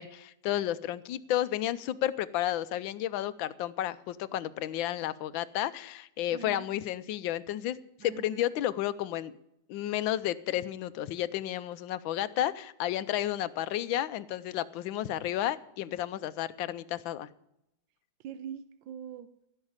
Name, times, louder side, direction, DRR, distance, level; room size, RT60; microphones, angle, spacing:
voice 1, 0.0-9.3 9.7-17.3, left 12 dB, 80° left, 14 dB, 1.4 m, -32 dB
voice 2, 6.3-6.7 8.0-8.5 18.2-19.5, right 8 dB, 75° right, 12 dB, 1.4 m, -43 dB
16.0 x 5.7 x 9.6 m, 0.81 s
omnidirectional pair, 2.1 m